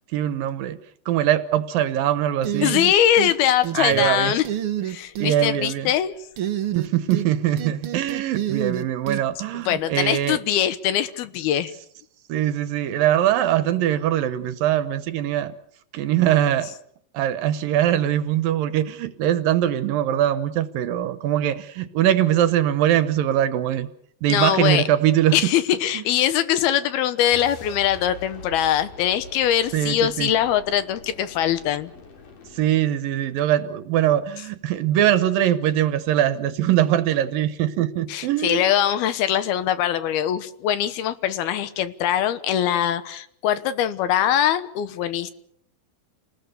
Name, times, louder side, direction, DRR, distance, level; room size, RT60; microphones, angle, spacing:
voice 1, 0.1-0.8 1.1-2.8 3.7-4.4 5.2-5.9 6.8-10.4 12.3-15.5 15.9-16.7 17.1-23.9 24.2-25.5 25.9-26.0 29.7-30.3 32.5-38.7, right 11 dB, 70° right, 2.6 m, -22 dB
sound 1, 2.4-3.3 3.6-4.1 4.4-5.3 6.4-7.3 7.6-9.2, right 11 dB, 90° right, 1.2 m, -27 dB
voice 2, 2.6-4.4 4.8-6.1 9.7-11.7 24.3-24.8 25.3-31.9 38.1-45.3, left 10 dB, 80° left, 3.1 m, -22 dB
sound 2, 27.3-32.9, left 2 dB, 55° left, 5.1 m, -44 dB
29.5 x 19.5 x 6.8 m
omnidirectional pair, 4.5 m